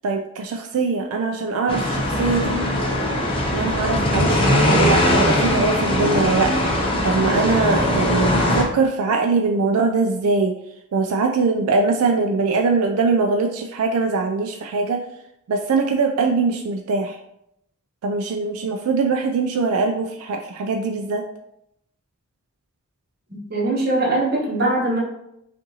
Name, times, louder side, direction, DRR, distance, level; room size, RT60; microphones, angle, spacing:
voice 1, 0.0-2.6 3.5-6.5 7.0-10.6 10.9-15.0 15.5-17.2 18.0-21.3, right 4 dB, 85° right, 3 dB, 0.4 m, -22 dB
sound 1, 1.7-8.6, left 1 dB, 25° left, 0.5 m, -20 dB
voice 2, 23.3-25.0, right 2 dB, 45° right, -4 dB, 1.2 m, -21 dB
5.2 x 2.6 x 2.7 m, 0.80 s
head